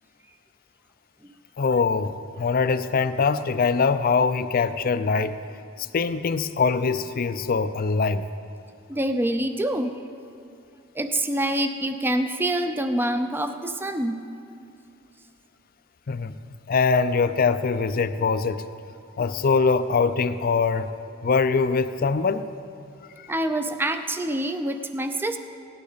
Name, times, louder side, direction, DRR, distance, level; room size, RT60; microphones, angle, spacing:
voice 1, 1.6-5.4 5.8-8.2 16.1-18.7 19.2-20.9 21.2-22.5 23.2-23.3, left 4 dB, 45° left, 12 dB, 0.4 m, -23 dB
voice 2, 8.9-9.9 10.9-14.2 23.3-25.4, right 1 dB, 10° right, 8 dB, 0.5 m, -26 dB
17.5 x 11.5 x 4.0 m, 2.5 s
head